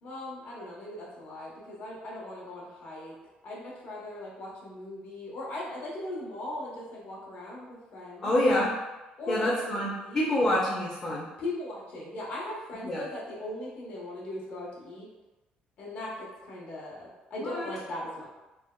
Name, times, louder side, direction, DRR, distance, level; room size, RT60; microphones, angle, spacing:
voice 1, 0.0-3.1 3.4-8.3 9.2-10.2 11.4-15.1 15.8-18.3, left 1 dB, 60° left, -4 dB, 0.8 m, -39 dB
voice 2, 8.2-8.7 9.3-11.3 12.8-13.0 17.4-17.7, left 1 dB, 30° left, -6 dB, 0.5 m, -27 dB
3.2 x 2.2 x 2.2 m, 1.0 s
cardioid pair, 140°, 3 cm